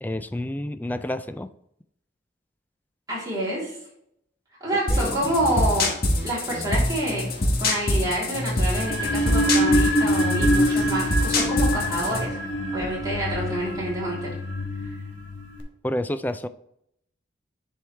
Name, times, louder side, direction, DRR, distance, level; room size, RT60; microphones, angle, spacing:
voice 1, 0.0-1.5 4.9-5.3 15.8-16.5, left 1 dB, 10° left, 11 dB, 0.3 m, -29 dB
voice 2, 3.1-3.8 4.6-5.9 6.2-12.4 12.7-14.3, right 1 dB, 20° right, -6 dB, 3.3 m, -28 dB
sound 1, 4.9-12.3, left 1 dB, 55° left, 1.5 m, -25 dB
sound 2, 8.7-15.6, equal, 75° left, 1.4 m, -25 dB
sound 3, 10.5-14.0, right 1 dB, 60° right, 1.2 m, -41 dB
10.5 x 4.7 x 3.3 m, 0.74 s
head